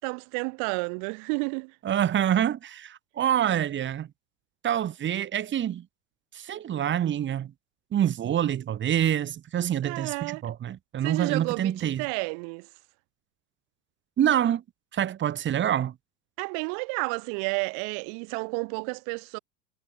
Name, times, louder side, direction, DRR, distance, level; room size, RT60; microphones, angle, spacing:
voice 1, 0.0-1.8 9.8-10.4 11.0-12.7 16.4-19.4, right 40 dB or more, 50° right, 4.4 m, -31 dB
voice 2, 1.8-4.1 4.6-5.8 6.3-7.5 7.9-12.0 14.2-14.6 14.9-15.9, right 10 dB, 30° right, 4.8 m, -26 dB
figure-of-eight pair, 95°, 40 cm